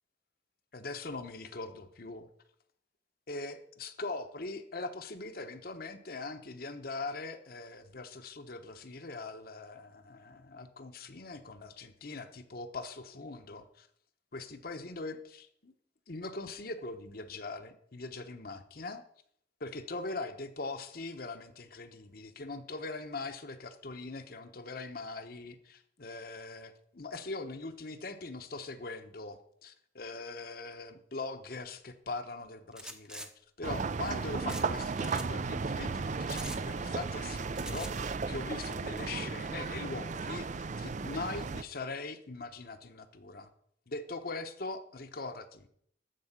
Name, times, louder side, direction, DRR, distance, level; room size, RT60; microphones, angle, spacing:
voice 1, 0.7-2.3 3.3-13.9 14.3-15.7 16.1-19.0 19.6-33.3 33.6-43.5 43.9-45.7, left 3 dB, 55° left, 8 dB, 1.0 m, -41 dB
sound 1, 32.7-33.3 34.5-34.7 34.9-35.3 36.3-36.6 37.6-37.9, right 1 dB, 5° right, 0.8 m, -43 dB
sound 2, 33.6-41.6, right 4 dB, 40° right, 0.5 m, -35 dB
13.0 x 4.8 x 8.1 m, 0.67 s
head